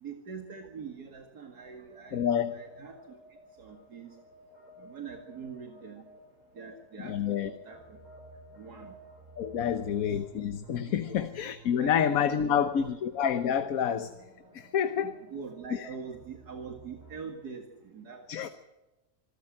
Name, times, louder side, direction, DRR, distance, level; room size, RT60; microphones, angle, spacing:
voice 1, 0.0-2.3 2.5-3.2 3.6-4.1 4.8-6.0 6.6-8.0 8.6-8.9 9.6-10.0 10.9-11.2 11.8-11.9 12.3-12.7 14.9-18.5, right 5 dB, 85° right, 3 dB, 2.6 m, -44 dB
sound 1, 1.7-17.2, right 2 dB, 25° right, 5.1 m, -54 dB
voice 2, 2.1-2.6 7.0-7.5 9.4-14.1 14.5-15.1 15.7-15.9 18.3-18.5, left 8 dB, 65° left, 10 dB, 1.4 m, -28 dB
26.0 x 13.5 x 7.7 m, 1.1 s
omnidirectional pair, 1.6 m